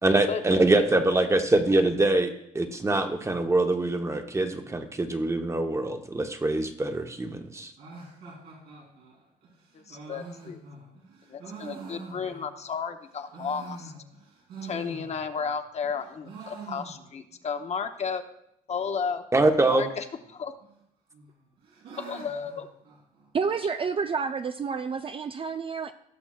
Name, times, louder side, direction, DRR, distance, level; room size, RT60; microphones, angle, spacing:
voice 1, 0.0-7.7 19.3-19.9, right 2 dB, 15° right, 6 dB, 0.9 m, -24 dB
sound 1, 7.8-12.8 13.1-15.5 15.8-17.4 17.6-17.7 17.9-18.0 18.7-19.1 20.1-20.7 21.1-23.5, right 3 dB, 85° right, 3.2 m, -45 dB
voice 2, 9.7-10.6 11.3-13.9 14.6-18.2 18.7-19.2 19.7-20.5 22.0-22.7, left 6 dB, 40° left, 7 dB, 0.8 m, -33 dB
voice 3, 23.3-25.9, right 5 dB, 35° right, 9 dB, 0.4 m, -29 dB
17.5 x 6.1 x 2.4 m, 0.76 s
cardioid pair, 90°, 16 cm